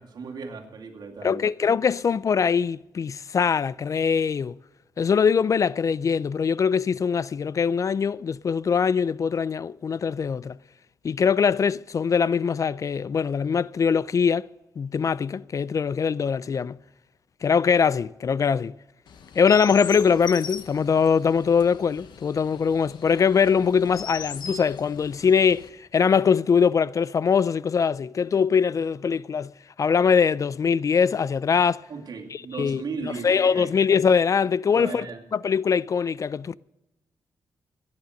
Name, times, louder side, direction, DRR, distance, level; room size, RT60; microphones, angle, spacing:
voice 1, 0.0-1.4 31.9-33.7 34.7-35.2, right 5 dB, 70° right, 2.3 m, -36 dB
voice 2, 1.2-4.6 5.0-10.6 11.0-14.5 14.8-16.8 17.4-18.7 19.4-29.5 29.8-31.8 32.3-35.1 35.3-36.5, left 6 dB, 45° left, 0.4 m, -22 dB
Chirp tweet, 19.1-25.7, left 6 dB, 90° left, 1.2 m, -40 dB
15.5 x 9.7 x 6.4 m
cardioid pair, 90°, 7 cm